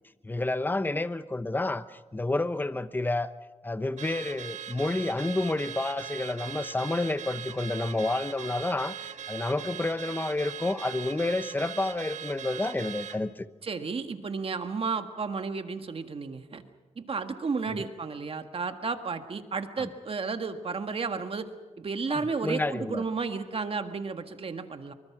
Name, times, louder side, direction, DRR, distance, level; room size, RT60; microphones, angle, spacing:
voice 1, 0.2-3.3 3.6-13.5 19.8-19.9 22.1-23.0, left 2 dB, 15° left, 0.9 m, -30 dB
Car / Alarm, 4.0-13.2, right 8 dB, 80° right, 1.6 m, -40 dB
voice 2, 13.6-16.6 16.9-21.5 21.8-24.9, right 4 dB, 50° right, 1.7 m, -32 dB
25.5 x 24.5 x 6.1 m
cardioid pair, 90°, 12 cm